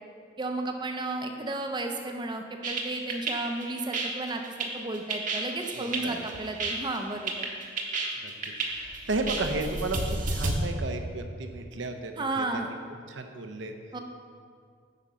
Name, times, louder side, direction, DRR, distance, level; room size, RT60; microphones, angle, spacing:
voice 1, 0.4-7.5 12.2-12.7 13.9-14.0, right 2 dB, 25° right, 4 dB, 0.6 m, -33 dB
sound 1, 2.6-10.5, right 3 dB, 40° right, 1.0 m, -32 dB
voice 2, 5.8-6.2 8.2-12.4 13.1-13.7, right 2 dB, 65° right, 5 dB, 0.7 m, -34 dB
9.0 x 5.0 x 5.6 m, 2.1 s
head